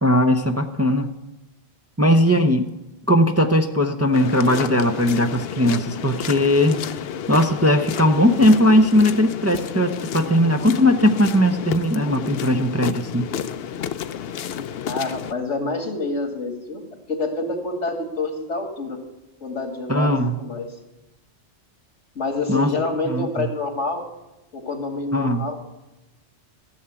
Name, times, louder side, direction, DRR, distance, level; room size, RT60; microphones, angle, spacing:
voice 1, 0.0-1.1 2.0-2.7 3.1-6.8 7.3-13.3 19.9-20.4 22.5-22.7 23.1-23.5 25.1-25.5, equal, 15° right, 5 dB, 0.6 m, -18 dB
sound 1, 4.1-15.3, left 8 dB, 65° left, 0.8 m, -31 dB
voice 2, 14.9-19.0 19.4-20.1 20.4-20.7 22.2-24.0 24.5-25.6, left 3 dB, 85° left, 4 dB, 2.4 m, -27 dB
14.5 x 7.2 x 8.9 m, 0.97 s
omnidirectional pair, 1.2 m